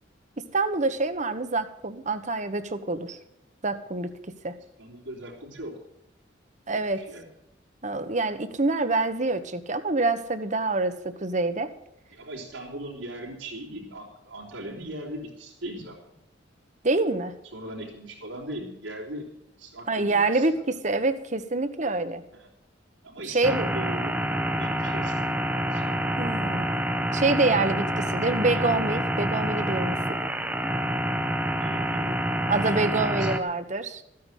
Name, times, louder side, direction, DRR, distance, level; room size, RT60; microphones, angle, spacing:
voice 1, 0.4-3.2 3.6-4.1 4.4-4.6 6.7-7.1 7.8-11.7 16.8-17.3 19.9-22.2 23.2-23.7 26.2-26.7 27.1-30.2 32.5-34.0, right 3 dB, 40° right, 10 dB, 1.2 m, -26 dB
voice 2, 4.8-5.7 6.9-7.2 12.1-16.1 17.5-19.3 19.6-20.6 22.3-22.5 23.0-25.8 28.0-28.3 31.6-32.3 32.7-33.6, right 1 dB, 85° right, -8 dB, 4.0 m, -39 dB
sound 1, 23.4-33.4, right 1 dB, 10° right, 0.9 m, -27 dB
14.5 x 9.6 x 6.4 m, 0.83 s
head